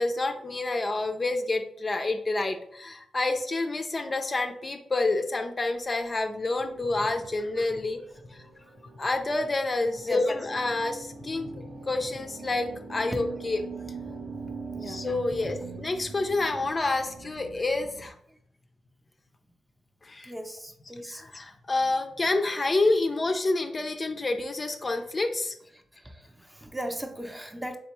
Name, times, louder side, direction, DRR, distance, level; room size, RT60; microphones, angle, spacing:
voice 1, 0.0-8.0 8.3-8.5 9.0-13.6 14.8-18.1 20.0-20.3 21.1-25.5, left 2 dB, 35° left, 6 dB, 0.4 m, -28 dB
sound 1, 6.3-18.1, right 4 dB, 85° right, 0.6 m, -43 dB
voice 2, 20.2-21.2 25.9-27.8, equal, 10° right, 5 dB, 0.6 m, -38 dB
3.5 x 3.3 x 3.0 m, 0.69 s
supercardioid pair, 50°, 0 cm